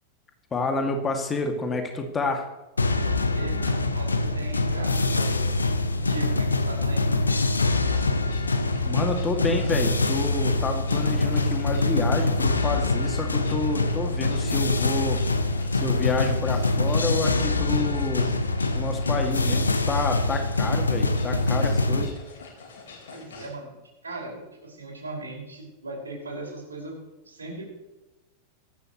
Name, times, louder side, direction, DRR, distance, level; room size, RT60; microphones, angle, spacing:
voice 1, 0.5-2.4 8.8-15.4 15.7-18.3 18.7-22.2, left 3 dB, 20° left, 4 dB, 2.4 m, -29 dB
sound 1, 2.8-22.1, left 2 dB, 80° left, 1.0 m, -24 dB
voice 2, 3.3-5.6 5.9-7.0 23.1-23.8 24.0-27.0 27.2-27.7, right 2 dB, 75° right, -2 dB, 5.7 m, -38 dB
sound 2, 7.7-23.5, left 4 dB, 60° left, 4.5 m, -46 dB
18.0 x 14.5 x 3.2 m, 1.0 s
figure-of-eight pair, 90°, 0 cm